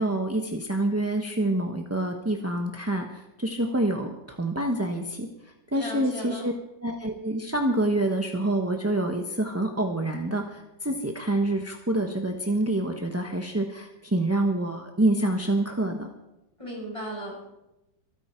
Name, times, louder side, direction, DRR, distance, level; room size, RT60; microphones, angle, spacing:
voice 1, 0.0-5.3 5.7-6.5 6.8-16.1, right 1 dB, 10° right, 3 dB, 0.7 m, -27 dB
voice 2, 5.7-6.4 16.6-17.4, equal, 15° left, -4 dB, 7.5 m, -36 dB
25.0 x 9.5 x 4.5 m, 0.91 s
omnidirectional pair, 2.0 m